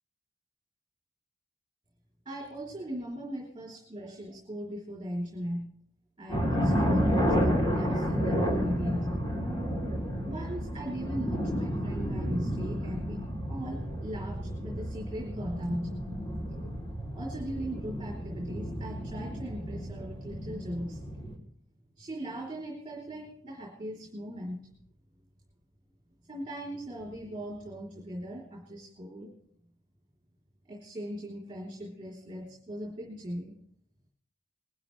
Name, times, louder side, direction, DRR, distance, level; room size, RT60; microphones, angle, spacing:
voice 1, 2.2-5.7 6.2-9.3 10.3-16.1 17.1-21.0 22.0-24.7 26.3-29.4 30.6-33.5, equal, 25° right, -2 dB, 3.4 m, -39 dB
sound 1, 6.3-21.4, equal, 25° left, 3.2 m, -31 dB
21.0 x 12.0 x 3.3 m, 0.64 s
head